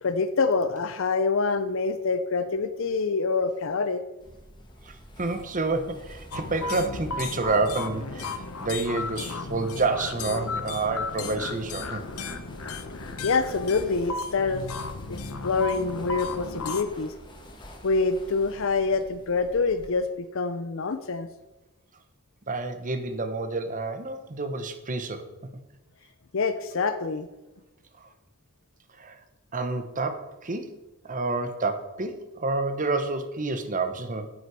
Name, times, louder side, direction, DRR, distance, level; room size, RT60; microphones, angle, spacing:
voice 1, 0.0-4.0 13.2-14.7 15.1-17.1 17.8-21.3 26.3-27.3, left 4 dB, 60° left, 9 dB, 0.6 m, -26 dB
sound 1, 4.2-19.9, equal, 20° left, 1.7 m, -48 dB
voice 2, 4.8-12.0 22.5-25.3 28.0-28.1 29.0-29.2 29.5-30.7 31.0-34.3, right 3 dB, 35° right, 9 dB, 1.0 m, -29 dB
sound 2, 6.3-16.8, left 4 dB, 85° left, 1.0 m, -35 dB
9.6 x 9.5 x 4.8 m, 1.0 s
head